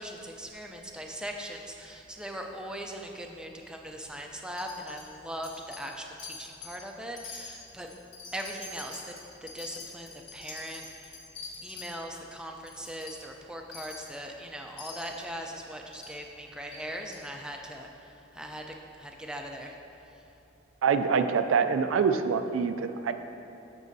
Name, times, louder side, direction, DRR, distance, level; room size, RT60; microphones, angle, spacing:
voice 1, 0.0-7.9 8.3-11.2 11.6-19.8 20.1-20.2, equal, 5° right, 1 dB, 0.5 m, -40 dB
Wind chime, 4.6-5.1 5.4-5.9 6.2-6.8 7.2-11.9 12.3-12.4 12.7-13.2 13.7-14.1 14.8-15.2 15.9-16.1 16.7-16.8 17.1-17.2, left 4 dB, 55° left, 1.6 m, -44 dB
voice 2, 20.8-23.1, right 6 dB, 75° right, 8 dB, 0.4 m, -25 dB
13.5 x 6.2 x 2.7 m, 2.9 s
head